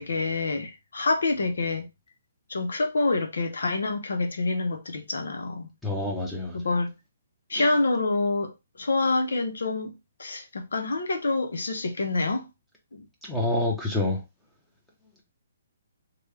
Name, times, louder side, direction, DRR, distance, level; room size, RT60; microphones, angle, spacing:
voice 1, 0.0-1.9 2.5-5.7 6.5-6.9 7.5-9.9 10.2-12.5 12.9-13.1, left 3 dB, 90° left, 0.8 m, -27 dB
voice 2, 5.8-6.6 7.5-7.7 13.2-14.2, left 2 dB, 5° left, 0.8 m, -27 dB
3.3 x 2.3 x 3.2 m
hypercardioid pair, 160°, 0 cm